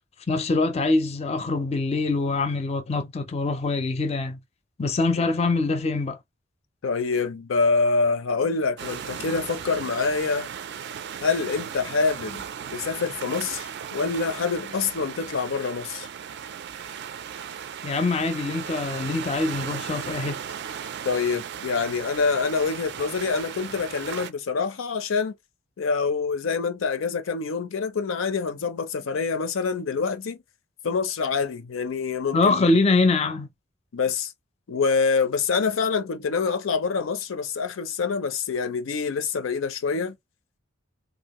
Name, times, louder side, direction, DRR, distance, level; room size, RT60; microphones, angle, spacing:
voice 1, 0.3-4.4 4.8-6.2 17.8-20.4 32.3-33.5, left 3 dB, 30° left, 0.4 m, -24 dB
voice 2, 6.8-10.5 11.2-12.4 12.7-16.1 21.0-25.3 25.8-30.4 30.8-32.7 33.9-34.3 34.7-40.1, left 4 dB, 85° left, 0.5 m, -26 dB
sound 1, 8.8-24.3, right 8 dB, 60° right, 0.4 m, -36 dB
2.7 x 2.5 x 2.9 m
head